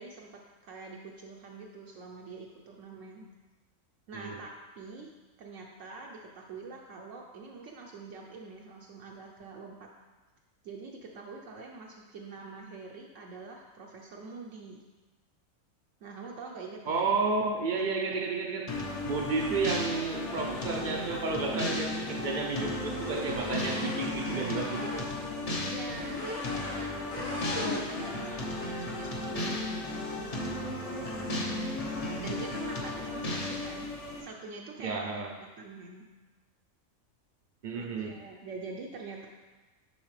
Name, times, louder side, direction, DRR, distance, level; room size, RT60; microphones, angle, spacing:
voice 1, 0.0-3.3 4.1-5.1 5.4-9.9 10.6-14.8 16.0-17.1 25.6-33.9 34.2-35.0 35.4-36.0 37.7-39.3, right 4 dB, 70° right, 0 dB, 0.9 m, -45 dB
voice 2, 16.9-18.7 19.0-25.0 34.8-35.3 37.6-38.1, right 4 dB, 55° right, 2 dB, 0.6 m, -31 dB
sound 1, 18.7-34.2, left 2 dB, 35° left, 0.8 m, -35 dB
sound 2, 22.9-25.0 25.9-26.9 27.1-28.1, left 1 dB, 80° left, 1.6 m, -38 dB
7.2 x 5.6 x 3.2 m, 1.3 s
omnidirectional pair, 1.4 m